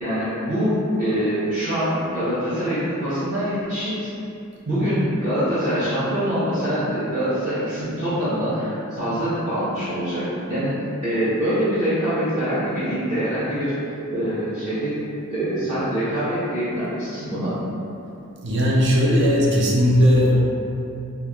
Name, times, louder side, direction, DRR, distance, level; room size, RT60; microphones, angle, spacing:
voice 1, 0.0-4.1 4.7-13.7 14.1-15.0 15.3-17.5, equal, 40° right, -16 dB, 0.9 m, -24 dB
voice 2, 18.4-20.3, equal, 55° right, -3 dB, 0.5 m, -17 dB
3.2 x 2.3 x 2.3 m, 2.8 s
head